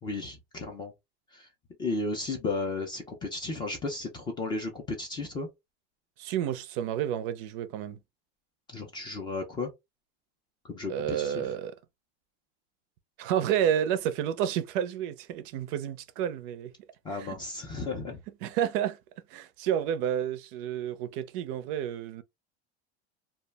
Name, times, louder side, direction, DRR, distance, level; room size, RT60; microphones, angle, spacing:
voice 1, 0.0-0.9 1.3-1.5 1.8-5.5 8.7-9.7 10.6-11.4 17.0-18.2, left 3 dB, 15° left, 0.3 m, -34 dB
voice 2, 6.2-8.0 10.9-11.7 13.2-16.7 17.1-17.4 18.4-19.0 19.3-22.2, right 10 dB, 55° right, 0.4 m, -30 dB
2.3 x 2.0 x 3.2 m
supercardioid pair, 150°, 33 cm